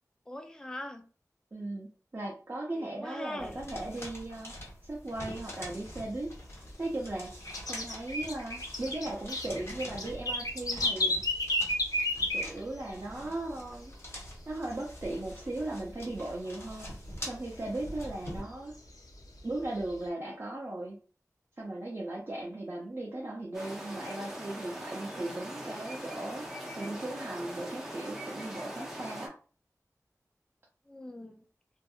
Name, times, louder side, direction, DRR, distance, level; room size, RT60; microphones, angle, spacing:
voice 1, 0.3-1.1 2.7-3.6 30.9-31.4, left 1 dB, 10° left, 6 dB, 0.4 m, -41 dB
voice 2, 1.5-4.5 4.8-6.3 6.8-7.3 7.7-11.4 12.3-13.9 14.5-16.9 17.3-18.7 19.4-21.0 21.6-26.4 26.8-29.3, right 2 dB, 40° right, -4 dB, 0.6 m, -37 dB
sound 1, 3.4-18.4, equal, 45° left, 1.2 m, -46 dB
sound 2, 5.4-6.7 7.0-13.1 13.4-13.5 13.8-14.3 14.6-15.8 16.1-16.2 16.6-16.7 17.1-18.3 18.7-20.1, left 1 dB, 75° left, 0.6 m, -32 dB
sound 3, 23.5-29.3, right 1 dB, 5° right, 0.8 m, -41 dB
2.7 x 2.5 x 2.4 m, 0.38 s
wide cardioid pair, 70°, 6 cm